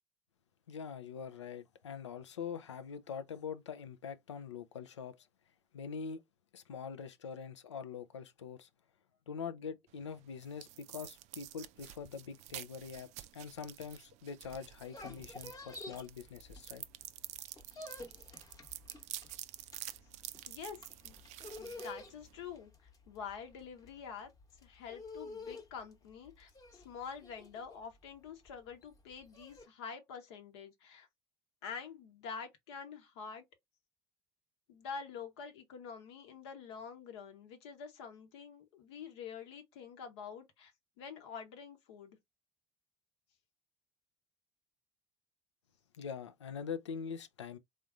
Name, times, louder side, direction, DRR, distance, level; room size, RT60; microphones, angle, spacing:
voice 1, 0.7-5.3 5.7-6.2 6.5-8.7 9.3-16.8 45.9-47.6, left 6 dB, 85° left, 0.4 m, -44 dB
sound 1, 9.9-22.6, right 14 dB, 50° right, 0.4 m, -49 dB
sound 2, 14.7-17.0 17.3-29.7, left 2 dB, 25° left, 0.9 m, -50 dB
voice 2, 20.5-21.2 21.6-24.3 24.6-31.1 31.6-33.4 34.7-40.7 41.0-42.2, left 6 dB, 70° left, 0.9 m, -47 dB
3.5 x 2.6 x 2.4 m
hypercardioid pair, 65°, 15 cm